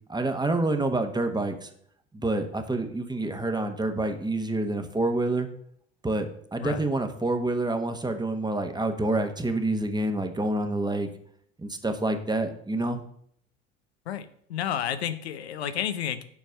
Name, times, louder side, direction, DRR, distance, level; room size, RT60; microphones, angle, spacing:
voice 1, 0.1-1.7 2.1-5.5 6.0-11.1 11.6-13.0, right 2 dB, 15° right, 7 dB, 1.1 m, -27 dB
voice 2, 14.1-16.2, left 10 dB, 90° left, 11 dB, 0.7 m, -31 dB
7.1 x 4.6 x 6.4 m, 0.66 s
hypercardioid pair, 65°, 31 cm